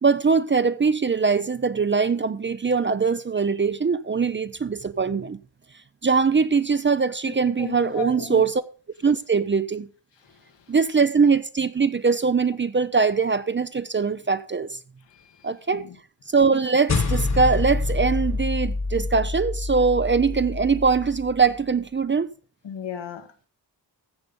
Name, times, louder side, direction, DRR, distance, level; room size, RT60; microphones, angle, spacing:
voice 1, 0.0-5.4 6.0-8.6 9.0-9.9 10.7-14.8 15.4-15.9 16.3-22.3, right 5 dB, 30° right, 0.5 m, -22 dB
voice 2, 7.2-8.4 10.3-10.4 15.1-16.0 22.6-23.5, left 6 dB, 85° left, 1.7 m, -36 dB
sound 1, 16.9-21.5, left 3 dB, 40° left, 1.5 m, -27 dB
15.0 x 6.8 x 5.2 m
wide cardioid pair, 130°, 42 cm